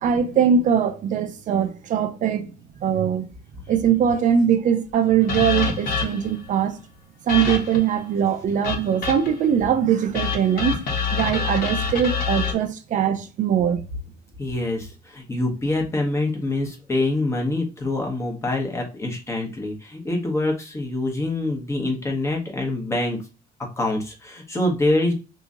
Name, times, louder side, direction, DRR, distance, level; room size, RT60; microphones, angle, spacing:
voice 1, 0.0-2.5 2.8-3.2 3.7-6.8 7.3-10.8 11.1-13.8, right 8 dB, 45° right, 0.5 m, -21 dB
sound 1, 5.3-6.4 7.3-7.9 8.6-9.4 10.1-12.5, left 5 dB, 55° left, 1.2 m, -26 dB
voice 2, 14.4-23.2 23.8-25.1, left 2 dB, 15° left, 1.0 m, -25 dB
2.9 x 2.7 x 3.6 m
cardioid pair, 150°, 18 cm